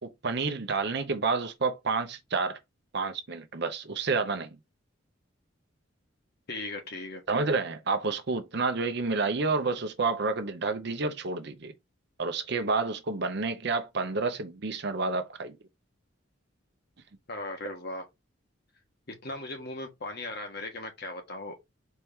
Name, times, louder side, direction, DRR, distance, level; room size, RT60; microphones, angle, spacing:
voice 1, 0.0-2.6 2.9-4.5 7.3-11.7 12.2-15.6, right 4 dB, 55° right, 0.7 m, -29 dB
voice 2, 6.5-7.2 17.3-18.1 19.2-21.6, left 2 dB, 50° left, 1.3 m, -37 dB
4.4 x 2.9 x 3.6 m
head